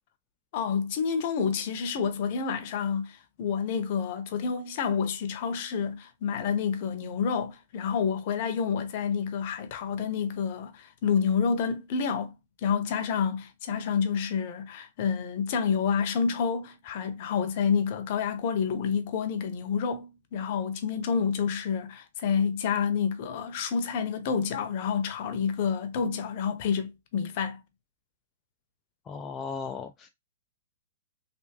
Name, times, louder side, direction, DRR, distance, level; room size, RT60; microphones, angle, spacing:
voice 1, 0.5-12.3 12.6-27.6, left 6 dB, 45° left, 0.8 m, -29 dB
voice 2, 29.0-30.1, left 5 dB, 15° left, 0.3 m, -36 dB
3.4 x 2.7 x 2.9 m
hypercardioid pair, 155°, 0 cm